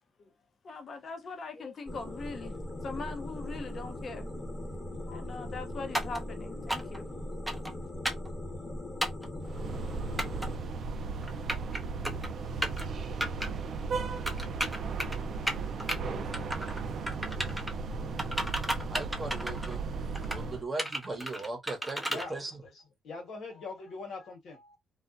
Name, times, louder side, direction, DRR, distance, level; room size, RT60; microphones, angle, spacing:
voice 1, 0.6-2.5 2.8-4.3 5.1-7.1, left 4 dB, 50° left, 0.6 m, -41 dB
sound 1, 1.9-10.6, left 1 dB, 20° left, 0.9 m, -39 dB
sound 2, 5.9-6.2 6.7-7.0 7.5-7.7 8.0-8.3 9.0-9.3 10.2-10.5 11.2-11.8 12.0-12.3 12.6-12.8 13.2-13.5 14.3-15.2 15.5-16.0 16.3-16.8 17.1-17.7 18.2-19.8 20.1-20.4 20.8-22.3, right 1 dB, 5° right, 0.6 m, -33 dB
sound 3, 9.4-20.6, right 4 dB, 60° right, 0.4 m, -36 dB
voice 2, 18.9-19.9 20.3-22.6, right 2 dB, 25° right, 0.9 m, -38 dB
voice 3, 23.0-24.8, left 3 dB, 65° left, 1.2 m, -42 dB
2.4 x 2.0 x 2.5 m
cardioid pair, 90°, 0 cm